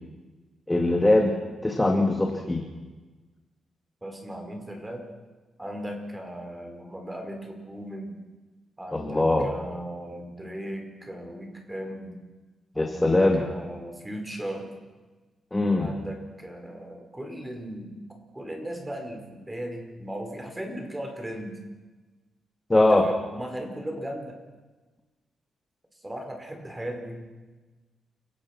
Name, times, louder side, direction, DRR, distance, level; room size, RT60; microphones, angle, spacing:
voice 1, 0.7-1.3 1.6-2.6 8.9-9.5 12.8-13.4 15.5-15.9 22.7-23.1, left 2 dB, 15° left, 2 dB, 2.5 m, -21 dB
voice 2, 4.0-5.0 5.6-8.2 8.8-12.2 12.7-14.7 15.8-18.0 18.3-21.6 22.9-24.4 26.0-27.2, equal, 10° right, 3 dB, 4.9 m, -37 dB
29.5 x 17.5 x 6.1 m, 1.2 s
cardioid pair, 110°, 0 cm